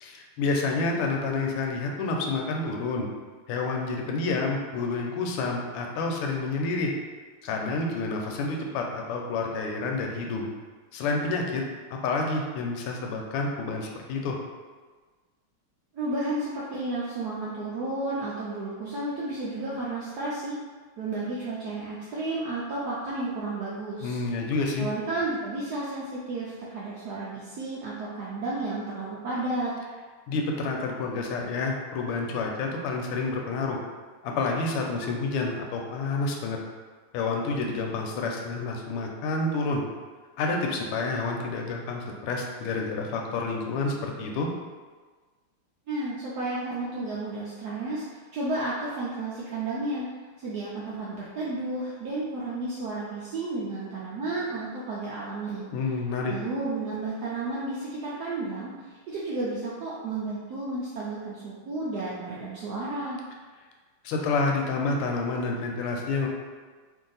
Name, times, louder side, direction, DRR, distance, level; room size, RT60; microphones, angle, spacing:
voice 1, 0.0-3.1 3.5-6.9 7.4-10.5 10.9-14.4 24.0-24.9 30.3-33.8 34.2-36.6 37.1-39.8 40.4-44.5 55.7-56.3 64.0-66.3, left 3 dB, 90° left, 1 dB, 1.5 m, -29 dB
voice 2, 15.9-20.6 21.0-24.2 24.8-29.7 45.9-48.0 48.3-50.1 50.4-55.7 56.3-58.7 59.1-63.2, right 2 dB, 80° right, -7 dB, 0.9 m, -32 dB
3.4 x 2.7 x 3.9 m, 1.4 s
omnidirectional pair, 2.4 m